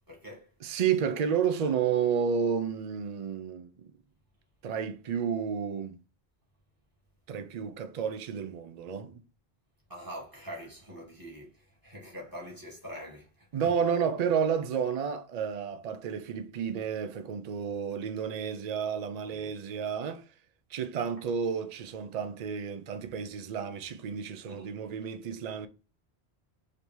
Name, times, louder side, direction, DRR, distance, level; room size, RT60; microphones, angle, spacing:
voice 1, 0.1-0.5 9.9-13.5 19.3-19.5 24.5-24.7, equal, 20° right, 1.5 m, -44 dB
voice 2, 0.6-3.9 4.6-6.0 7.3-9.2 13.5-20.2 20.7-25.7, right 7 dB, 50° right, 0.5 m, -31 dB
5.2 x 2.7 x 3.0 m
omnidirectional pair, 1.1 m